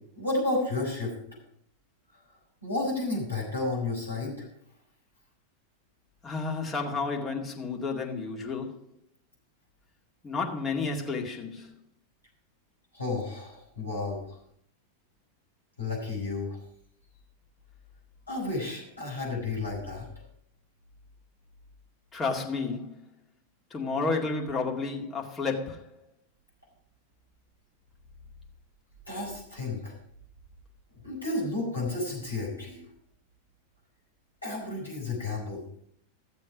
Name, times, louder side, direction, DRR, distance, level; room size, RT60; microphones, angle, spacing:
voice 1, 0.2-1.2 2.6-4.5 12.9-14.4 15.8-16.6 18.3-20.1 29.1-29.9 31.0-32.8 34.4-35.6, left 2 dB, 85° left, 5.2 m, -32 dB
voice 2, 6.2-8.8 10.2-11.7 22.1-23.0 23.7-25.9, left 4 dB, 20° left, 2.1 m, -31 dB
14.5 x 7.5 x 4.9 m
figure-of-eight pair, 90°, 0 cm